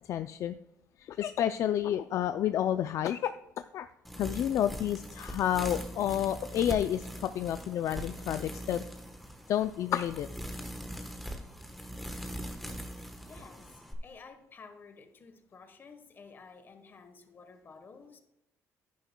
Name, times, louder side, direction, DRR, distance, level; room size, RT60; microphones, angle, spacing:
voice 1, 0.0-0.5 1.0-3.9 4.2-8.8 9.5-10.3, left 10 dB, 60° left, 10 dB, 0.3 m, -30 dB
sound 1, 4.0-13.9, equal, ahead, 1.1 m, -41 dB
voice 2, 13.2-18.2, left 4 dB, 35° left, 8 dB, 1.1 m, -52 dB
10.5 x 10.0 x 2.2 m, 0.92 s
cardioid pair, 120°, 6 cm